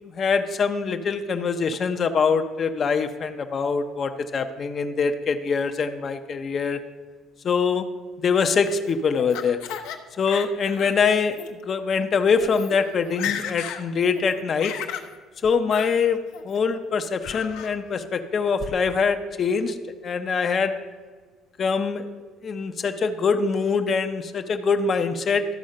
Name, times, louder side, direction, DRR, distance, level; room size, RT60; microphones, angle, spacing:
voice 1, 0.1-6.8 7.4-7.9 8.2-9.6 10.2-14.7 15.4-16.2 16.4-19.8 20.0-20.8 21.6-22.1 22.4-25.5, left 5 dB, 35° left, 7 dB, 0.5 m, -23 dB
Laughter, 8.4-10.0 10.3-10.9 11.3-11.5 12.2-12.3 12.5-12.7 13.0-13.8 14.2-15.1 15.7-15.9 16.3-16.8 17.2-17.7, left 9 dB, 90° left, 0.8 m, -34 dB
13.0 x 4.7 x 6.4 m, 1.4 s
cardioid pair, 150°, 0 cm